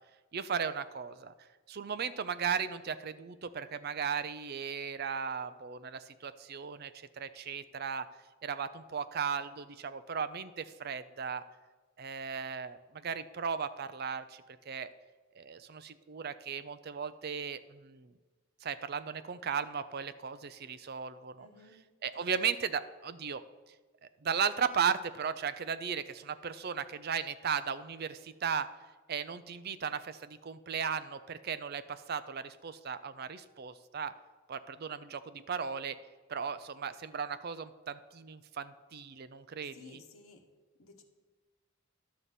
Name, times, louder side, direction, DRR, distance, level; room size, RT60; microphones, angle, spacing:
voice 1, 0.3-1.3 1.7-8.1 8.4-11.4 12.0-14.9 15.4-18.1 18.6-21.5 22.0-23.4 24.0-28.7 29.1-34.1 34.5-36.0 36.3-40.0, right 6 dB, 45° right, 13 dB, 0.4 m, -36 dB
voice 2, 21.4-21.8 22.1-22.5 39.6-40.5 40.8-41.0, left 2 dB, 75° left, 2 dB, 1.3 m, -56 dB
11.5 x 4.0 x 7.5 m, 1.3 s
head